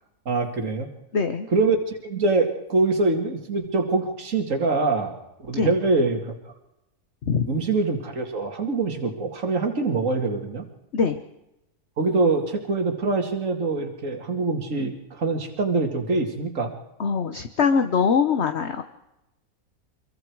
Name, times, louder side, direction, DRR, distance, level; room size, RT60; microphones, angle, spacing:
voice 1, 0.3-0.9 1.5-6.3 7.5-10.6 12.0-16.7, right 3 dB, 55° right, 4 dB, 2.7 m, -24 dB
voice 2, 1.1-1.5 5.5-5.7 7.3-7.5 10.9-11.2 17.0-18.8, left 5 dB, 50° left, 7 dB, 1.3 m, -22 dB
25.5 x 23.5 x 4.8 m, 0.89 s
omnidirectional pair, 1.6 m